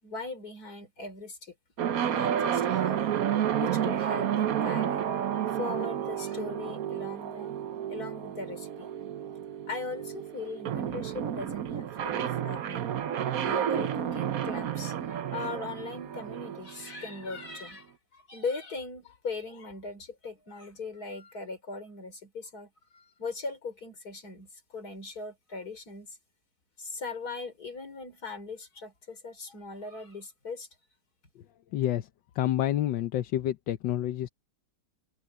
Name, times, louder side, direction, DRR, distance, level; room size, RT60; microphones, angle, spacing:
voice 1, 0.0-1.5 2.0-5.0 5.5-7.6 7.9-8.9 9.7-12.9 13.4-17.9 18.1-26.2 26.8-30.7, left 3 dB, 55° left, 4.7 m, -39 dB
sound 1, 1.8-17.6, right 9 dB, 60° right, 1.2 m, -31 dB
voice 2, 31.7-32.1 32.3-34.3, left 12 dB, 85° left, 1.5 m, -28 dB
omnidirectional pair, 2.0 m